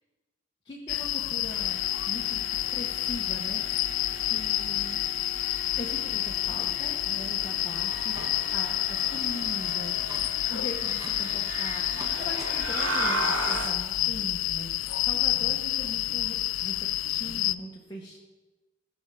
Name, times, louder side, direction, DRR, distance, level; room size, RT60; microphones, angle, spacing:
voice 1, 0.6-2.4 2.7-4.0 4.3-5.0 5.8-14.7 15.0-18.2, equal, 25° left, -3 dB, 1.4 m, -41 dB
sound 1, 0.9-17.5, left 15 dB, 70° left, 0.4 m, -29 dB
sound 2, 1.5-13.8, right 1 dB, 80° right, 2.9 m, -37 dB
sound 3, 7.9-8.6 8.9-9.3 9.6-9.7 9.9-10.3 10.8-11.2 11.8-12.5 12.9-13.0 14.4-14.5 15.0-15.1, right 1 dB, 20° right, 1.6 m, -45 dB
16.5 x 6.3 x 7.0 m, 1.2 s
head